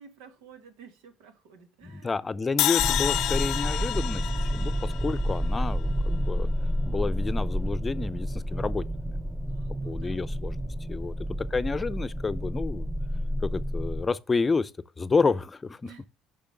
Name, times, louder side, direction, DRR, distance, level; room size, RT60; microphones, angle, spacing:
voice 1, 0.0-2.2 9.4-10.3 10.8-11.2 15.8-16.1, right 7 dB, 90° right, 1.7 m, -52 dB
voice 2, 1.8-6.5 6.9-9.1 9.8-11.1 11.5-12.9 13.4-14.7 15.0-15.9, left 4 dB, 25° left, 0.6 m, -30 dB
sound 1, 2.6-5.8, left 14 dB, 70° left, 0.4 m, -29 dB
sound 2, 2.8-14.0, equal, 10° right, 0.7 m, -30 dB
6.8 x 5.5 x 6.7 m
supercardioid pair, 80°, 0 cm